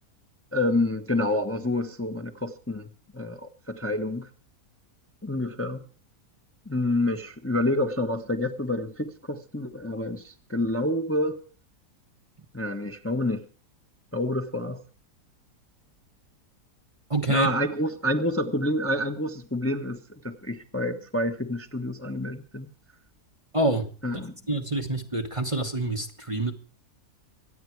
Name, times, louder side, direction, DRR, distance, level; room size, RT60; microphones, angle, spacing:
voice 1, 0.5-2.9 3.1-4.3 5.2-5.8 6.7-11.4 12.5-13.4 14.1-14.8 17.3-22.7 24.0-24.3, left 1 dB, 10° left, 1.1 m, -28 dB
voice 2, 17.1-17.5 23.5-23.9 24.5-26.5, right 2 dB, 20° right, 1.3 m, -26 dB
25.0 x 9.5 x 4.7 m
omnidirectional pair, 1.7 m